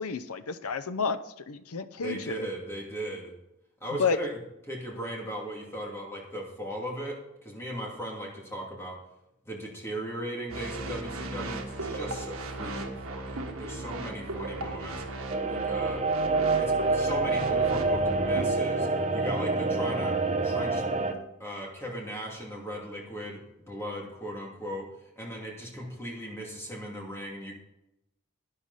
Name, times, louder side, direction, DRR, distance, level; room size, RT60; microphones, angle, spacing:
voice 1, 0.0-2.5 4.0-4.2, left 5 dB, 85° left, 13 dB, 0.7 m, -30 dB
voice 2, 2.0-3.3 3.8-4.4 4.7-9.0 9.5-15.0 15.4-16.0 16.6-20.8 21.4-27.5, right 1 dB, 10° left, -2 dB, 2.5 m, -38 dB
sound 1, 10.5-18.4, right 2 dB, 75° right, 1.6 m, -36 dB
sound 2, 15.3-21.1, right 3 dB, 30° right, 0.8 m, -27 dB
11.5 x 10.5 x 4.1 m, 0.86 s
head